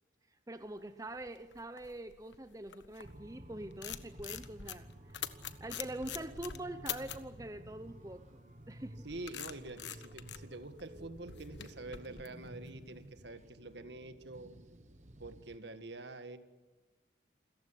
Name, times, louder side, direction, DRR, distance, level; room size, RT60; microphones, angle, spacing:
voice 1, 0.5-4.9 5.6-8.2 8.7-8.9, right 1 dB, 20° right, 10 dB, 0.8 m, -44 dB
sound 1, 0.9-3.2 3.6-7.3 8.6-13.1, left 10 dB, 75° left, 1.3 m, -45 dB
sound 2, 3.0-15.6, right 1 dB, 40° right, 1.4 m, -53 dB
voice 2, 9.0-14.5 15.2-16.4, right 2 dB, 65° right, 10 dB, 1.8 m, -46 dB
28.5 x 14.5 x 9.8 m, 1.2 s
head